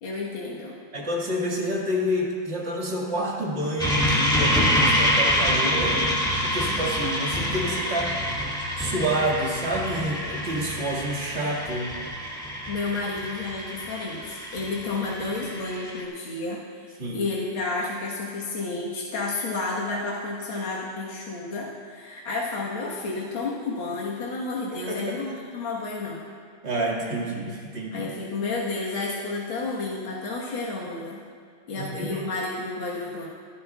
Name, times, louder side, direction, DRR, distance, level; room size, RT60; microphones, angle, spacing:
voice 1, 0.0-0.8 12.7-26.2 27.9-31.2 31.7-33.3, left 3 dB, 85° left, -5 dB, 2.3 m, -31 dB
voice 2, 0.9-8.2 8.8-12.0 17.0-17.2 24.7-25.2 26.6-28.1 31.8-32.2, equal, 35° right, -3 dB, 2.2 m, -28 dB
sound 1, 3.8-16.0, equal, ahead, 2.0 m, -26 dB
27.5 x 11.0 x 2.4 m, 2.1 s
omnidirectional pair, 2.2 m